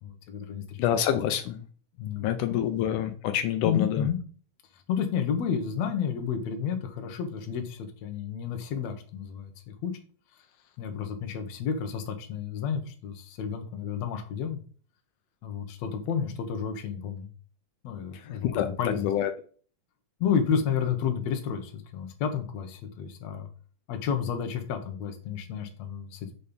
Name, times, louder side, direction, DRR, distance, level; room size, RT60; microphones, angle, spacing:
voice 1, 0.0-0.8 2.0-2.3 3.6-4.2 4.7-10.0 10.8-14.6 15.4-17.3 17.8-19.1 20.2-23.5 23.9-26.3, left 7 dB, 65° left, 5 dB, 2.1 m, -31 dB
voice 2, 0.8-1.6 2.2-4.1 18.2-19.3, left 10 dB, 85° left, 7 dB, 2.2 m, -27 dB
6.8 x 4.3 x 5.2 m, 0.42 s
omnidirectional pair, 3.6 m